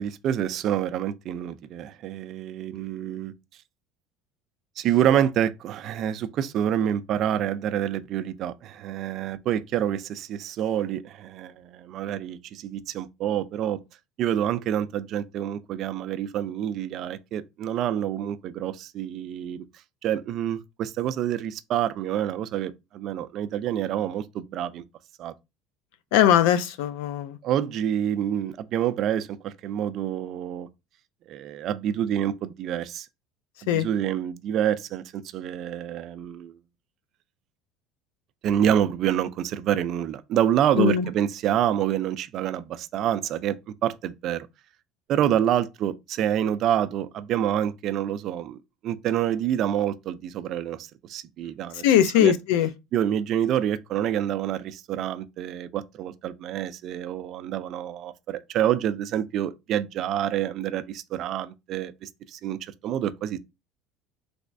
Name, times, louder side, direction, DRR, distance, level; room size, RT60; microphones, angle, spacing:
voice 1, 0.0-3.3 4.8-13.8 14.2-19.6 20.0-24.8 25.2-25.3 27.4-30.7 31.3-33.1 33.6-36.5 38.4-44.5 45.1-48.6 48.8-51.8 52.2-52.3 52.9-63.4, right 10 dB, 50° right, 0.3 m, -27 dB
voice 2, 26.1-27.4 33.7-33.8 40.8-41.1 51.8-52.7, left 10 dB, 80° left, 0.4 m, -20 dB
3.3 x 3.0 x 2.6 m
cardioid pair, 130°, 0 cm